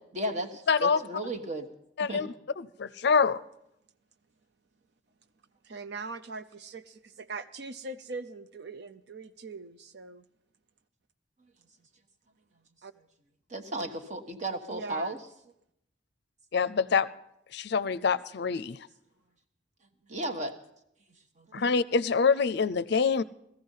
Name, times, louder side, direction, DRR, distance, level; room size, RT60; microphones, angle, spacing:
voice 1, 0.1-1.7 2.0-2.2 13.5-15.2 20.1-20.6 21.4-21.6, right 1 dB, 40° right, 1.3 m, -34 dB
voice 2, 0.7-1.0 2.0-2.3 2.6-3.4 16.5-17.1 17.5-18.9 21.5-23.2, left 5 dB, 60° left, 0.5 m, -25 dB
voice 3, 5.6-10.2 12.8-12.9 14.7-15.2, right 3 dB, 65° right, 0.6 m, -41 dB
18.0 x 14.5 x 5.6 m
head